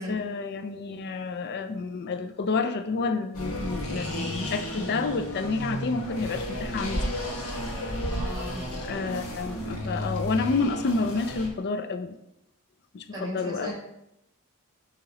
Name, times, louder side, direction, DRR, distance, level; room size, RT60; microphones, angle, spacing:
voice 1, 0.0-7.1 8.8-12.2 12.9-13.7, left 4 dB, 50° left, 9 dB, 0.4 m, -29 dB
sound 1, 3.3-11.5, equal, 70° left, 1.3 m, -33 dB
voice 2, 8.1-8.6 13.1-13.7, equal, 20° right, -4 dB, 2.1 m, -36 dB
7.0 x 2.9 x 4.8 m, 0.82 s
head